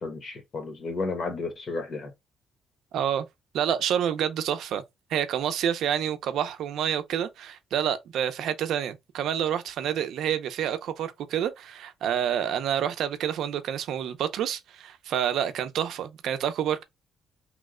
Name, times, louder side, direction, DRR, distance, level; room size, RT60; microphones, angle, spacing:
voice 1, 0.0-2.1, left 3 dB, 40° left, 0.7 m, -32 dB
voice 2, 2.9-3.3 3.5-4.8 5.1-16.8, right 9 dB, 70° right, 0.4 m, -28 dB
3.0 x 2.1 x 3.5 m
cardioid pair, 165°, 0 cm